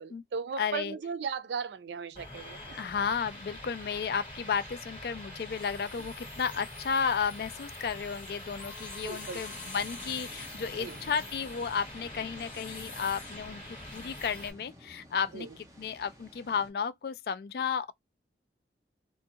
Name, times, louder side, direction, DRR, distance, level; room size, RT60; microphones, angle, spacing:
voice 1, 0.0-2.8 9.0-9.4 10.8-11.0 15.3-15.5, right 5 dB, 80° right, 0.4 m, -37 dB
voice 2, 0.6-1.0 2.8-17.9, left 6 dB, 60° left, 0.3 m, -33 dB
sound 1, 2.2-14.5, left 1 dB, 30° left, 1.7 m, -44 dB
sound 2, 8.6-11.2, left 8 dB, 85° left, 0.8 m, -55 dB
sound 3, 9.2-16.7, equal, 20° right, 0.7 m, -53 dB
2.5 x 2.3 x 2.8 m
head